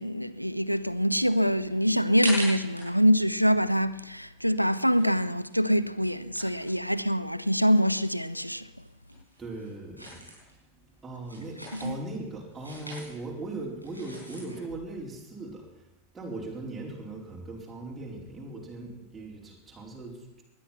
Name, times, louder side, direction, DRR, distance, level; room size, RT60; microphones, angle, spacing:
voice 1, 0.0-8.7 11.8-11.9, equal, 90° right, 0.6 m, -25 dB
sound 1, 1.7-7.6 7.9-14.7, right 1 dB, 90° left, 5.2 m, -41 dB
voice 2, 9.4-15.9 16.1-20.4, right 2 dB, 15° right, 4.4 m, -39 dB
20.0 x 12.0 x 5.9 m
figure-of-eight pair, 90°, 0 cm